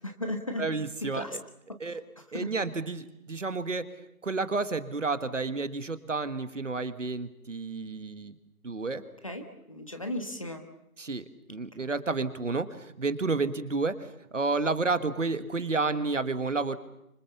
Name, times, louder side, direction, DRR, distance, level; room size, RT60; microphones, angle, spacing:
voice 1, 0.0-0.6 1.0-1.4 2.3-2.5 9.2-10.6 11.8-11.9, left 1 dB, 20° left, 6 dB, 1.2 m, -35 dB
voice 2, 0.6-1.4 1.8-2.0 2.3-3.8 4.2-8.3 8.6-9.0 11.0-16.8, right 3 dB, 55° right, 12 dB, 1.7 m, -31 dB
25.5 x 25.5 x 7.1 m, 0.81 s
figure-of-eight pair, 165°, 45 cm